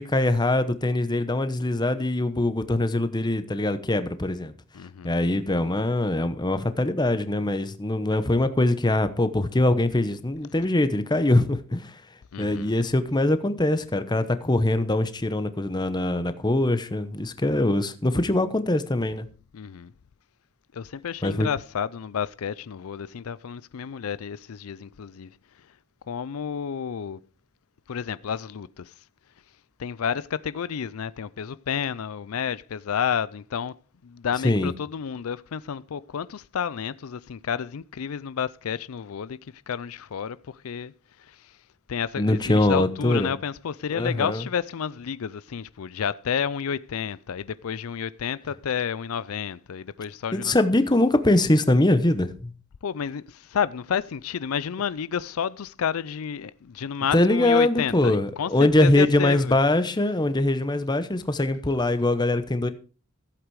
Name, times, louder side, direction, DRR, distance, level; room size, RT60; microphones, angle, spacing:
voice 1, 0.0-4.5 5.0-12.0 12.4-19.3 21.2-21.5 34.4-34.7 42.2-43.3 43.9-44.4 50.3-52.5 57.1-62.7, left 1 dB, 20° left, 0.9 m, -23 dB
voice 2, 4.7-5.1 12.3-12.7 19.5-19.9 20.7-25.3 26.1-27.2 27.9-28.9 29.8-33.7 34.0-39.4 39.7-40.9 41.2-41.5 41.9-50.6 52.8-59.6, left 7 dB, 85° left, 0.5 m, -30 dB
15.0 x 8.2 x 4.8 m
head